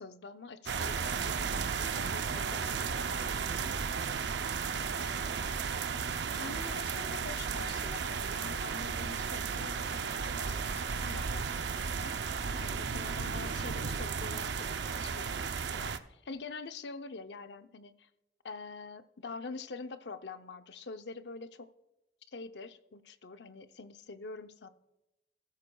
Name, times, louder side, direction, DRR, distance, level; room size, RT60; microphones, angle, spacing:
voice 1, 0.0-3.8 4.8-5.6 6.3-18.1 18.4-21.7 22.3-24.7, left 4 dB, 80° left, 10 dB, 0.6 m, -46 dB
sound 1, 0.7-16.0, right 6 dB, 85° right, 0.6 m, -34 dB
14.5 x 13.0 x 2.3 m, 0.95 s
head